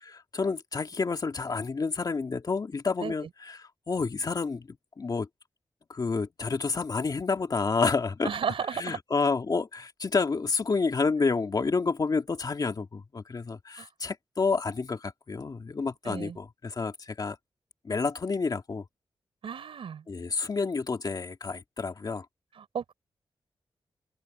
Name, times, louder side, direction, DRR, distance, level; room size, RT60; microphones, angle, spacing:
voice 1, 0.0-5.3 5.9-8.4 8.7-17.4 17.8-18.8 20.1-22.3, left 4 dB, 45° left, 2.2 m, -29 dB
voice 2, 8.2-9.0 13.8-13.9 16.0-16.4 19.4-20.0 22.6-22.9, right 7 dB, 90° right, 4.9 m, -33 dB
wide cardioid pair, 95°, 9 cm